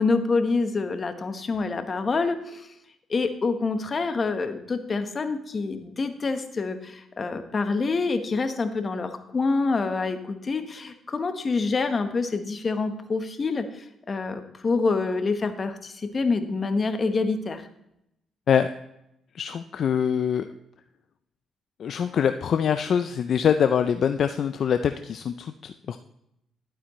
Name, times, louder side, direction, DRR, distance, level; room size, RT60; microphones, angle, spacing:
voice 1, 0.0-2.7 3.1-17.7, left 4 dB, 35° left, 8 dB, 1.1 m, -26 dB
voice 2, 19.3-20.5 21.8-26.0, left 8 dB, 60° left, 9 dB, 0.4 m, -24 dB
11.5 x 8.5 x 3.1 m, 0.80 s
cardioid pair, 90°, 0 cm